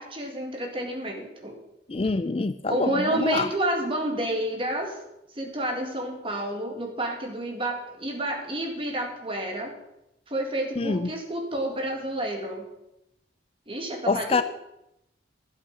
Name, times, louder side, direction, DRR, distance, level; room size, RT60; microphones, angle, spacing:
voice 1, 0.0-1.6 2.7-4.9 5.4-9.7 10.3-12.6 13.7-14.4, right 1 dB, 30° right, 2 dB, 2.1 m, -29 dB
voice 2, 1.9-3.5 10.8-11.1 14.1-14.4, left 3 dB, 30° left, 12 dB, 0.4 m, -26 dB
11.5 x 8.4 x 7.1 m, 0.83 s
head